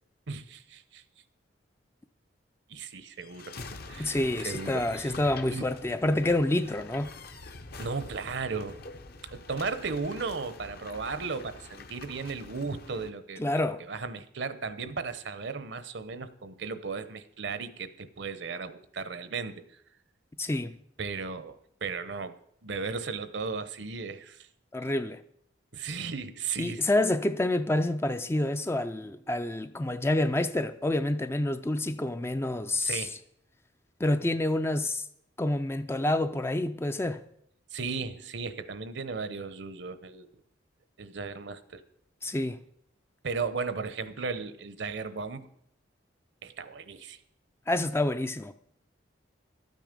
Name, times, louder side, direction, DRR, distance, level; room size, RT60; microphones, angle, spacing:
voice 1, 0.3-1.0 2.7-3.6 3.9-5.1 5.5-5.7 7.8-8.8 9.3-13.4 13.8-19.8 21.0-22.4 22.6-24.5 25.7-27.1 32.8-33.2 37.7-40.3 41.0-41.8 43.2-45.5 46.4-47.2, right 4 dB, 65° right, 0.8 m, -36 dB
sound 1, 3.2-13.1, left 3 dB, 50° left, 0.9 m, -45 dB
voice 2, 4.0-7.1 13.4-13.8 20.4-20.8 24.7-25.2 26.6-33.1 34.0-35.1 35.4-37.2 42.2-42.6 47.7-48.5, left 1 dB, 15° left, 0.4 m, -28 dB
12.5 x 9.1 x 5.2 m
head